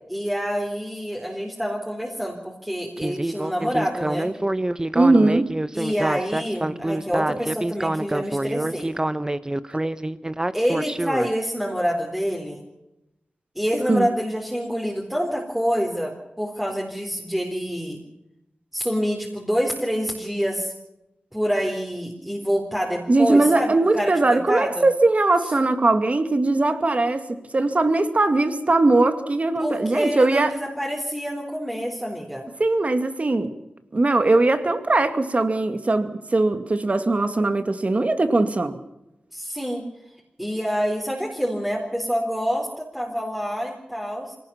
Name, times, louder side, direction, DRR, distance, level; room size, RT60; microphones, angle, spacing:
voice 1, 0.1-4.3 5.7-8.9 10.5-12.6 13.6-18.0 18.7-20.7 21.3-24.8 29.6-32.5 39.3-39.8 40.4-44.4, equal, 5° right, -1 dB, 4.0 m, -27 dB
Speech synthesizer, 3.0-11.3, right 1 dB, 20° right, 1.0 m, -26 dB
voice 2, 4.9-5.5 13.9-14.1 23.1-27.2 27.5-30.5 32.6-33.5 33.9-38.8, right 2 dB, 40° right, 10 dB, 2.3 m, -20 dB
25.0 x 18.0 x 7.3 m, 0.89 s
wide cardioid pair, 85°, 3 cm